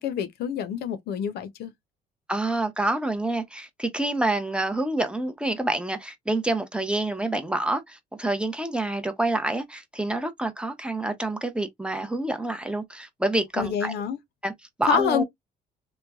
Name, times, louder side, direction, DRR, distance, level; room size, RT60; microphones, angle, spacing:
voice 1, 0.0-1.7 13.6-14.2 14.9-15.2, left 8 dB, 70° left, 0.6 m, -27 dB
voice 2, 2.3-13.9 14.4-14.5 14.8-15.2, right 2 dB, 5° right, 0.6 m, -27 dB
3.0 x 2.1 x 2.3 m
cardioid pair, 110°, 17 cm